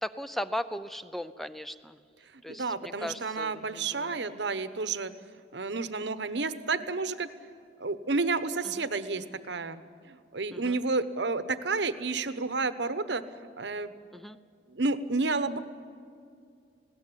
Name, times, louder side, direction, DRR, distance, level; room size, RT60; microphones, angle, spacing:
voice 1, 0.0-2.0 2.4-4.1 8.8-8.9 10.5-10.8 14.1-14.4, left 1 dB, ahead, 12 dB, 0.5 m, -37 dB
voice 2, 2.5-5.1 5.5-7.3 7.8-9.8 10.1-13.9 14.7-15.6, right 3 dB, 70° right, 12 dB, 1.0 m, -31 dB
20.0 x 17.5 x 9.9 m, 2.4 s
head